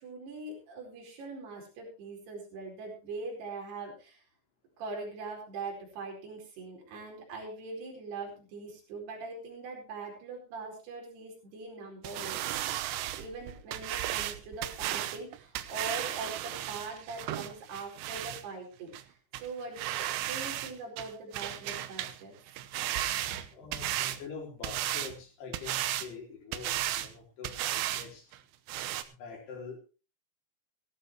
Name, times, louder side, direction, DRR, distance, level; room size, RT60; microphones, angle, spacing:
voice 1, 0.0-4.2 4.8-12.4 13.2-22.4 23.1-23.9, right 3 dB, 55° right, 0 dB, 6.5 m, -42 dB
sound 1, 12.0-18.4 18.9-19.0 19.3-19.5 19.8-20.7 21.0-22.2 22.5-24.2 24.6-25.1 25.5-26.1 26.5-27.1 27.4-28.1 28.3-28.4 28.7-29.0, right 13 dB, 75° right, 2.8 m, -34 dB
voice 2, 23.5-28.3 29.1-29.8, left 5 dB, 55° left, 1 dB, 5.9 m, -45 dB
17.5 x 14.0 x 3.2 m, 0.33 s
omnidirectional pair, 5.6 m